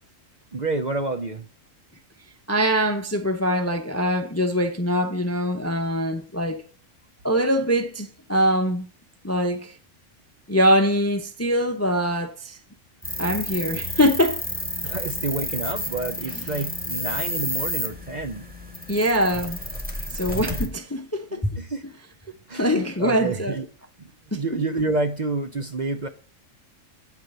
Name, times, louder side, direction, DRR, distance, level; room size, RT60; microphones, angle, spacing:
voice 1, 0.5-1.4 14.8-18.4 21.3-21.8 22.5-23.7 24.0-26.1, right 3 dB, 40° right, 0.7 m, -29 dB
voice 2, 2.5-6.6 7.2-8.9 9.2-9.7 10.5-12.6 13.2-14.4 14.8-14.9 18.9-19.6 20.1-21.5 22.5-23.5 24.3-24.6, equal, 15° left, 0.5 m, -23 dB
sound 1, 13.0-20.7, left 1 dB, 5° right, 1.8 m, -31 dB
9.1 x 4.7 x 6.7 m
omnidirectional pair, 1.3 m